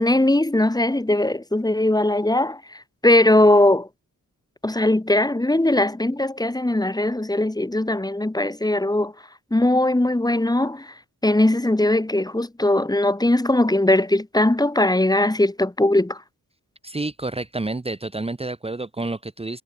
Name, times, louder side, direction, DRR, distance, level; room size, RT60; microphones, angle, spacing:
voice 1, 0.0-2.6 3.0-3.9 4.6-9.1 9.5-10.9 11.2-16.2, left 1 dB, 10° left, 2.9 m, -20 dB
voice 2, 16.8-19.6, right 2 dB, 15° right, 1.6 m, -29 dB
wide cardioid pair, 140°, 36 cm